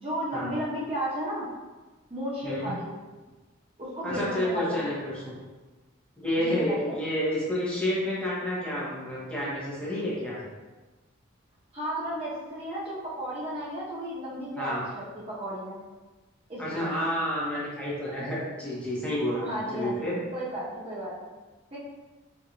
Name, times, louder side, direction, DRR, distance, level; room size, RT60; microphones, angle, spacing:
voice 1, 0.0-1.5 2.1-2.9 3.8-4.8 6.4-6.9 11.7-15.8 16.5-16.9 19.5-20.1 20.3-21.1 21.7-21.8, equal, 30° right, -7 dB, 0.7 m, -33 dB
voice 2, 4.0-5.4 6.2-10.4 14.6-14.8 16.6-20.2, left 1 dB, 5° left, -8 dB, 1.1 m, -30 dB
4.4 x 2.6 x 3.8 m, 1.2 s
head